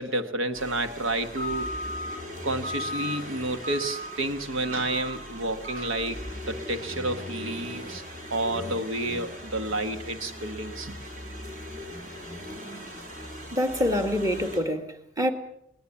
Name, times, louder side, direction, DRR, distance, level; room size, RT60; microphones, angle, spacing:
voice 1, 0.0-1.7 2.4-8.0 8.3-11.0, right 2 dB, 90° right, 1.5 m, -30 dB
sound 1, 0.5-14.6, left 1 dB, 40° right, 5.0 m, -38 dB
voice 2, 13.5-15.3, equal, 15° right, 2.0 m, -26 dB
20.0 x 20.0 x 7.1 m
head